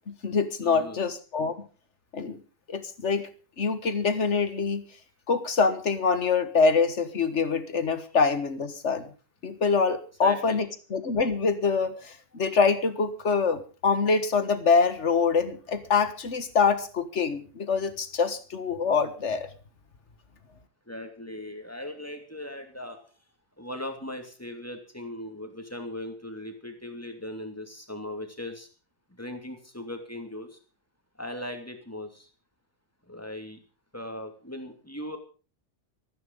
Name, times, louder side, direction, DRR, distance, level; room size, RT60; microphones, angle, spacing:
voice 1, 0.1-1.6 2.1-2.4 2.7-3.3 3.6-4.8 5.3-9.1 9.4-19.5, left 5 dB, 65° left, 11 dB, 1.9 m, -25 dB
voice 2, 0.6-1.0 10.2-10.7 20.9-23.0 23.6-28.7 29.2-30.6 31.2-32.3 33.1-33.6 33.9-35.2, left 1 dB, 10° left, 5 dB, 2.7 m, -38 dB
14.0 x 13.5 x 5.5 m, 0.38 s
omnidirectional pair, 1.3 m